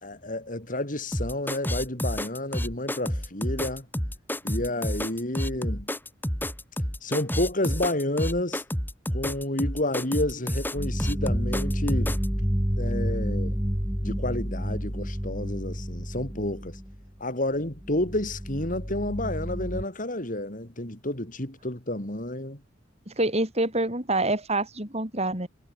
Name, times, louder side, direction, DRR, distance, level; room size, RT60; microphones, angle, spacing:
voice 1, 0.0-3.9 4.4-5.9 7.0-8.6 9.1-12.2 12.8-13.6 14.0-16.8 17.2-22.6, left 1 dB, 45° left, 4.2 m, -30 dB
sound 1, 1.1-12.3, equal, 10° left, 4.4 m, -29 dB
sound 2, 10.7-17.1 17.6-19.8, equal, 10° right, 4.9 m, -29 dB
voice 2, 23.1-25.5, right 2 dB, 35° right, 7.5 m, -26 dB
head